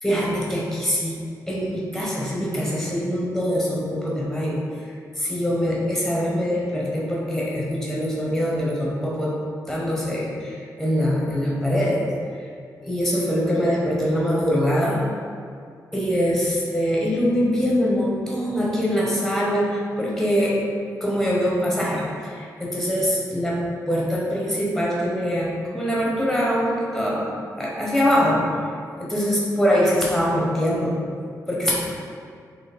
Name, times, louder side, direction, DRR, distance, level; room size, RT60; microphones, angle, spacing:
voice 1, 0.0-1.2 1.5-9.3 9.7-12.1 12.4-12.5 12.8-15.0 15.9-20.6 21.0-23.6 23.9-28.5 29.0-31.0 31.5-31.7, equal, 5° left, -5 dB, 1.0 m, -23 dB
3.9 x 3.1 x 4.2 m, 2.3 s
wide cardioid pair, 150°, 7 cm